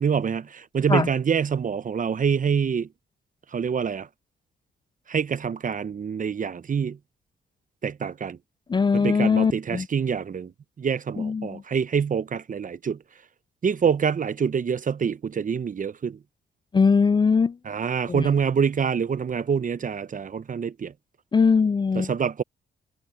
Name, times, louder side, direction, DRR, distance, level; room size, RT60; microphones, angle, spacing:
voice 1, 0.0-2.9 3.5-4.1 5.1-7.0 7.8-8.4 8.9-10.5 10.8-13.0 13.6-16.2 17.6-20.9 22.0-22.4, right 6 dB, 45° right, 0.8 m, -26 dB
voice 2, 8.7-9.9 11.2-11.6 16.7-17.6 18.1-18.3 21.3-22.1, left 5 dB, 25° left, 0.4 m, -21 dB
cardioid pair, 65°, 19 cm